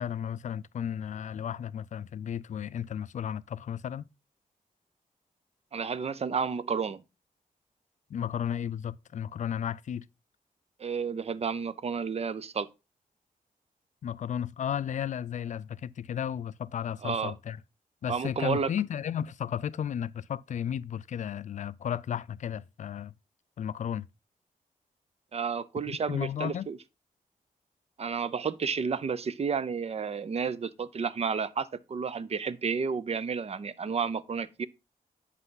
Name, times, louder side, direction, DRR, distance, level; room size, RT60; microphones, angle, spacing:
voice 1, 0.0-4.0 8.1-10.1 14.0-17.6 18.0-23.1 23.6-24.1 25.9-26.7, left 9 dB, 55° left, 0.4 m, -34 dB
voice 2, 5.7-7.0 10.8-12.7 17.0-17.3 18.1-18.7 25.3-26.8 28.0-34.7, right 6 dB, 45° right, 0.6 m, -31 dB
8.1 x 5.6 x 3.9 m
cardioid pair, 95°, 15 cm